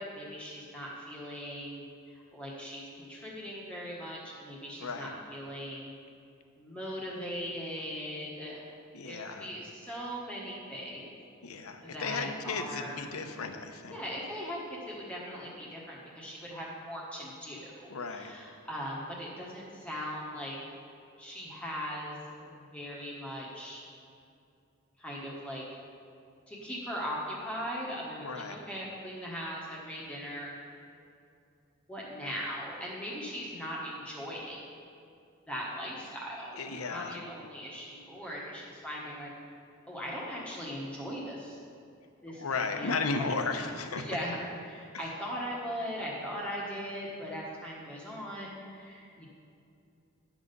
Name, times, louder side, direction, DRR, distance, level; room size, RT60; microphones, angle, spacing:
voice 1, 0.0-5.9 6.6-8.6 9.0-11.1 11.8-13.0 13.9-20.6 21.2-23.8 25.0-25.7 26.5-30.5 31.9-34.6 35.5-39.3 39.9-41.6 42.2-43.0 43.6-44.4 44.6-49.3, equal, 5° left, -5 dB, 1.2 m, -39 dB
voice 2, 8.9-9.5 11.4-14.0 17.9-18.3 28.2-28.6 36.6-37.2 42.3-44.1 44.9-45.1, left 4 dB, 80° left, 7 dB, 0.8 m, -35 dB
10.5 x 6.2 x 5.3 m, 2.5 s
head